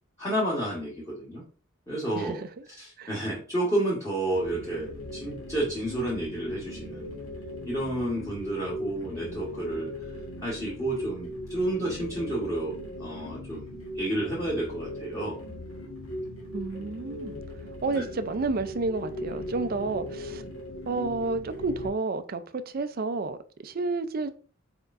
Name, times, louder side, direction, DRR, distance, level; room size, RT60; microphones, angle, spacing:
voice 1, 0.2-1.4 1.9-2.4 2.8-7.1 7.6-9.9 10.4-12.7 13.0-15.4 17.9-18.1, right 1 dB, 15° left, 1.2 m, -30 dB
voice 2, 2.1-2.7 3.0-3.1 16.5-17.4 17.8-20.4 20.9-24.3, right 3 dB, 45° right, 0.4 m, -31 dB
sound 1, 4.3-21.9, left 1 dB, 80° left, 1.4 m, -39 dB
4.5 x 4.4 x 2.5 m
head